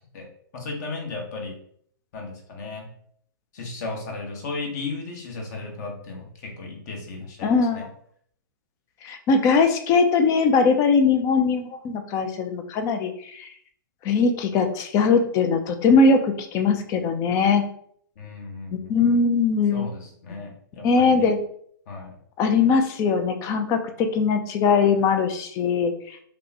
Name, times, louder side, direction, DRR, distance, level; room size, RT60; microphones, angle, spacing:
voice 1, 0.5-1.6 2.1-2.9 3.5-7.8 18.2-19.0 19.7-21.3 21.9-22.1, left 3 dB, 50° left, 1 dB, 1.2 m, -35 dB
voice 2, 7.4-7.9 9.0-13.5 14.0-17.6 18.7-19.9 20.8-21.4 22.4-26.2, left 4 dB, 30° left, 7 dB, 0.5 m, -21 dB
5.0 x 2.2 x 2.8 m, 0.63 s
hypercardioid pair, 125°, 12 cm